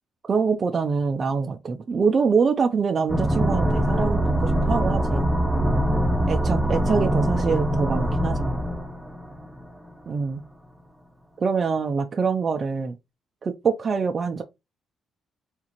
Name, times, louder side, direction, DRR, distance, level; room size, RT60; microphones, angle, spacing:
voice 1, 0.2-5.3 6.3-8.6 10.1-10.4 11.4-13.0 13.4-14.4, right 5 dB, 40° right, 0.4 m, -25 dB
sound 1, 3.1-9.6, right 1 dB, 10° right, 0.7 m, -23 dB
3.6 x 2.5 x 2.9 m
cardioid pair, 90°, 0 cm